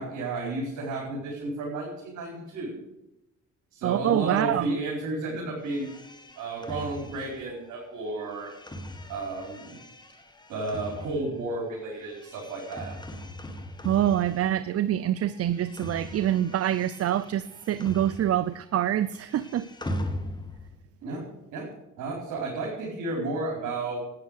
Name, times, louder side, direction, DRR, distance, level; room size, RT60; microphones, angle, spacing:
voice 1, 0.0-2.8 3.7-5.9 6.4-8.5 9.1-9.8 10.5-12.9 21.0-21.2 21.5-21.7 22.0-24.0, right 2 dB, 80° right, -3 dB, 4.5 m, -32 dB
voice 2, 3.8-4.8 13.8-19.7, right 11 dB, 50° right, 15 dB, 0.6 m, -26 dB
sound 1, 5.6-14.9 15.2-18.6 18.9-20.8, left 1 dB, 15° left, 2.0 m, -40 dB
11.5 x 9.4 x 6.6 m, 0.89 s
cardioid pair, 90°, 30 cm